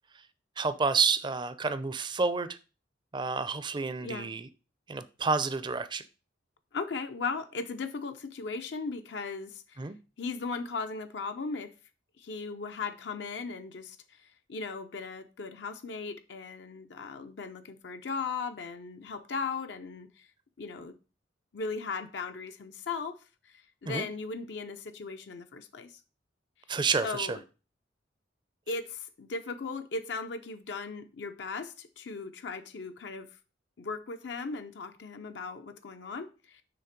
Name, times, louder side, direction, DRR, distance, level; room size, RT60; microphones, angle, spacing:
voice 1, 0.6-2.6 3.1-4.5 4.9-6.0 9.8-10.0 23.9-24.1 26.7-27.4, right 4 dB, 25° right, 0.4 m, -29 dB
voice 2, 4.0-4.3 6.7-9.8 10.2-11.7 12.2-14.0 14.5-20.3 20.6-20.9 21.5-23.2 23.5-25.9 27.0-27.4 28.7-33.3 33.8-36.6, left 4 dB, 70° left, 0.6 m, -37 dB
6.9 x 3.4 x 5.1 m
head